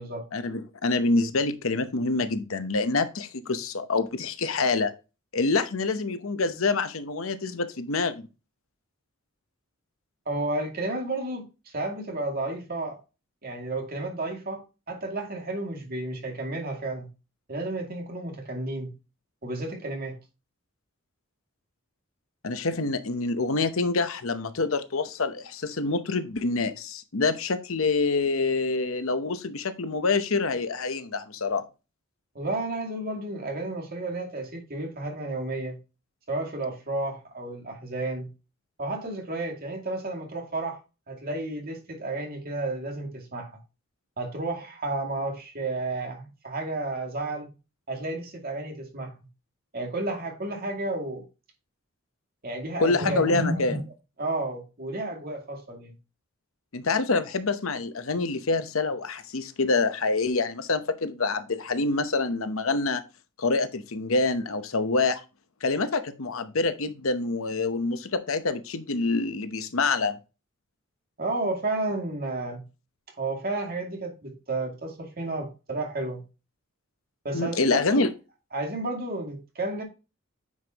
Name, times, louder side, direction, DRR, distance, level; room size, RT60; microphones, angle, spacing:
voice 1, 0.3-4.9 5.3-8.3 22.4-31.6 52.8-53.8 56.7-63.0 63.4-65.2 65.6-70.2 77.3-78.1, left 3 dB, 70° left, 0.8 m, -26 dB
voice 2, 10.3-11.4 11.7-13.0 13.4-17.1 17.5-18.9 19.4-20.2 32.3-35.8 36.3-38.3 38.8-40.8 41.1-43.5 44.2-47.5 47.9-49.1 49.7-51.2 52.4-53.8 54.2-55.9 71.2-72.6 73.2-76.2 77.2-78.0 78.5-79.8, right 2 dB, 45° right, 2.3 m, -32 dB
9.5 x 5.3 x 2.9 m
head